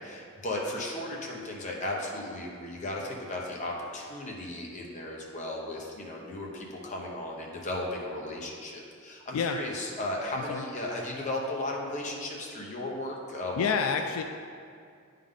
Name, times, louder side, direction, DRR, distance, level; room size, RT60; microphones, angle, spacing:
voice 1, 0.0-13.8, left 1 dB, 35° left, -1 dB, 0.9 m, -35 dB
voice 2, 13.6-14.2, left 6 dB, 75° left, 6 dB, 0.3 m, -28 dB
9.1 x 3.7 x 3.7 m, 2.3 s
head